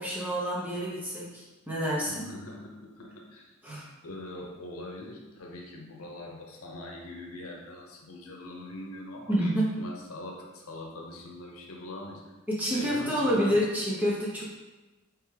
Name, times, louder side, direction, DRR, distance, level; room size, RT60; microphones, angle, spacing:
voice 1, 0.0-2.3 3.6-3.9 9.3-9.8 12.5-14.4, equal, 10° right, -6 dB, 0.7 m, -28 dB
voice 2, 2.1-3.5 4.0-9.5 9.8-12.2 12.7-13.7, left 1 dB, 90° left, 0 dB, 0.7 m, -42 dB
3.5 x 3.3 x 3.3 m, 1.2 s
head